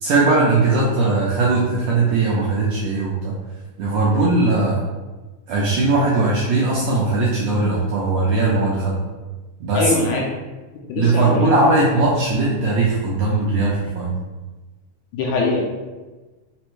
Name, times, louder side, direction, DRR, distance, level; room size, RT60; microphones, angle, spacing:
voice 1, 0.0-3.3 3.8-4.8 5.5-9.0 9.6-9.9 11.0-14.1, right 3 dB, 80° right, -5 dB, 1.5 m, -19 dB
voice 2, 9.7-10.4 10.9-11.5 15.2-15.6, left 3 dB, 80° left, -1 dB, 1.9 m, -22 dB
5.1 x 2.1 x 4.5 m, 1.2 s
omnidirectional pair, 3.7 m